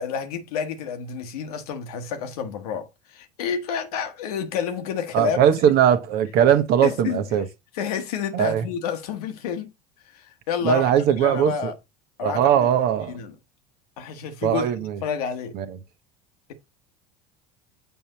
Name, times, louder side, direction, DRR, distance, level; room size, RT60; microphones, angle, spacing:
voice 1, 0.0-5.4 6.8-7.2 7.7-9.7 10.0-11.7 12.2-12.7 13.1-13.3 14.0-14.7 15.0-15.6, left 7 dB, 75° left, 1.1 m, -29 dB
voice 2, 5.1-7.4 8.3-8.6 10.6-11.7 12.2-13.2 14.4-15.0 15.5-15.7, right 9 dB, 55° right, 1.0 m, -20 dB
6.9 x 5.4 x 2.9 m
hypercardioid pair, 75°, 19 cm